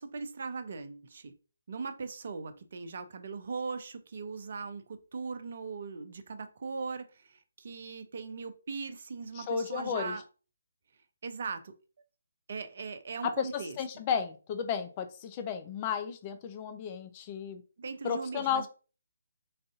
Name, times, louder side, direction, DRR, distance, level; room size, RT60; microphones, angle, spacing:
voice 1, 0.0-1.3 1.7-10.2 11.2-11.7 12.5-13.8 17.8-18.7, right 4 dB, 50° right, 0.6 m, -39 dB
voice 2, 9.3-10.1 13.2-17.6 18.0-18.7, left 7 dB, 25° left, 0.6 m, -33 dB
4.1 x 2.6 x 3.6 m
figure-of-eight pair, 145°, 0 cm